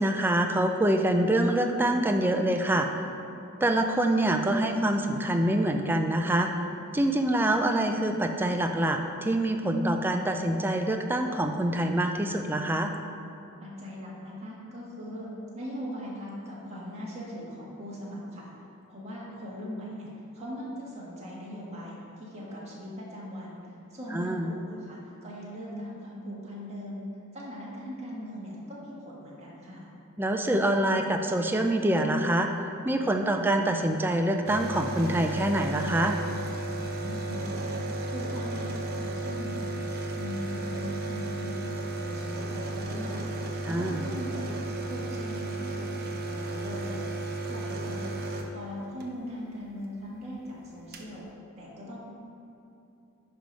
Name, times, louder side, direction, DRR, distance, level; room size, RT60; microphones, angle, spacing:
voice 1, 0.0-3.0 3.6-6.5 6.9-12.9 24.1-24.5 30.2-32.5 32.8-36.2 43.6-44.0, right 1 dB, 10° right, 4 dB, 0.4 m, -25 dB
voice 2, 13.6-18.5 18.9-20.1 20.3-23.6 23.9-27.0 27.3-29.9 36.8-37.8 38.1-39.9 40.2-43.3 43.6-44.6 44.9-47.1 47.5-51.2 51.6-52.0, equal, 30° right, -6 dB, 1.7 m, -40 dB
sound 1, 34.5-49.1 50.4-50.5 50.7-51.1, right 2 dB, 45° right, 0.6 m, -34 dB
10.0 x 3.4 x 5.2 m, 2.8 s
head